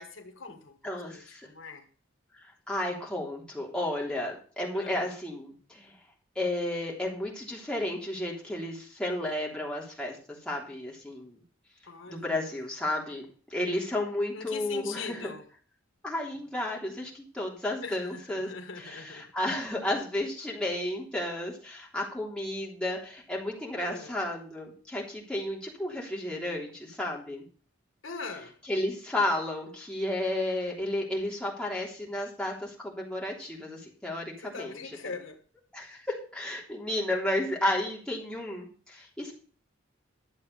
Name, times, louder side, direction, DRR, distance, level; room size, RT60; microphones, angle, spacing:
voice 1, 0.0-0.8 1.0-1.9 4.7-5.1 11.9-12.5 14.3-15.4 17.8-19.3 23.8-24.1 28.0-28.6 34.4-35.4, left 4 dB, 85° left, 1.6 m, -42 dB
voice 2, 0.8-1.5 2.7-5.9 6.3-11.4 12.1-13.2 13.5-15.3 16.0-18.5 18.8-27.4 28.7-34.8 35.7-39.3, left 1 dB, 5° left, 3.3 m, -32 dB
12.5 x 7.4 x 6.5 m
head